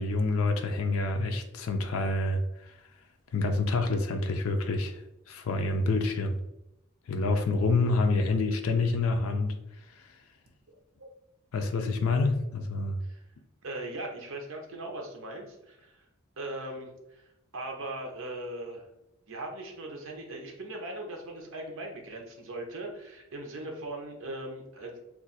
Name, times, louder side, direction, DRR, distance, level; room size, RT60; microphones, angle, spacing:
voice 1, 0.0-2.7 3.3-5.0 5.3-6.3 7.1-9.5 11.5-13.0, left 3 dB, 85° left, 0.4 m, -27 dB
voice 2, 13.6-16.1 16.4-17.3 17.5-18.9 19.3-25.0, right 1 dB, 75° right, 0.7 m, -39 dB
2.4 x 2.4 x 3.9 m
head